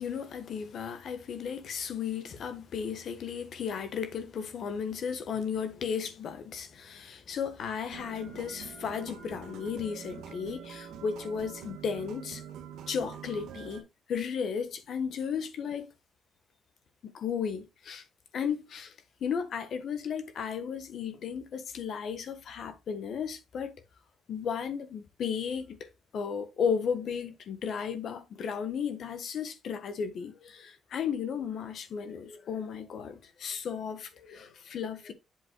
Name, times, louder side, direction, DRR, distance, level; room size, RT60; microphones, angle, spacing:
voice 1, 0.0-12.4 12.9-13.8 14.1-15.9 17.0-18.0 18.3-18.9 19.2-23.7 24.3-25.9 26.1-35.1, left 7 dB, 65° left, 1.3 m, -34 dB
sound 1, 7.9-13.8, right 8 dB, 85° right, 1.5 m, -45 dB
8.1 x 7.2 x 2.3 m
cardioid pair, 90°, 0 cm